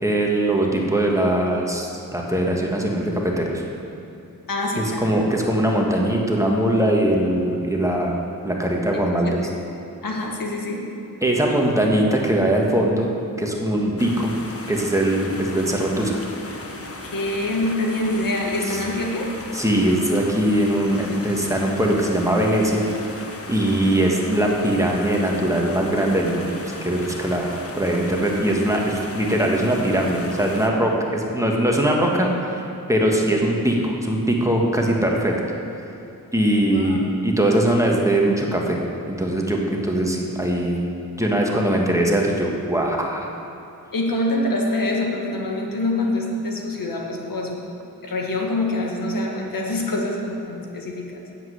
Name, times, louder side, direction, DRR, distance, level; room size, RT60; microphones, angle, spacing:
voice 1, 0.0-3.6 4.8-8.2 8.4-9.5 11.2-13.1 13.4-14.3 14.7-16.2 18.7-18.8 19.5-22.9 23.5-27.5 27.8-32.6 32.9-35.3 36.3-38.8 39.1-40.8 41.2-43.4, right 1 dB, 10° right, -1 dB, 1.7 m, -21 dB
voice 2, 4.5-5.1 8.9-9.3 10.0-10.8 17.1-19.3 36.7-37.0 43.9-47.6 48.0-51.2, left 1 dB, 65° left, 0 dB, 1.7 m, -25 dB
sound 1, 14.0-30.7, left 2 dB, 40° left, 1.1 m, -36 dB
9.4 x 7.6 x 8.0 m, 2.8 s
cardioid pair, 80°, 36 cm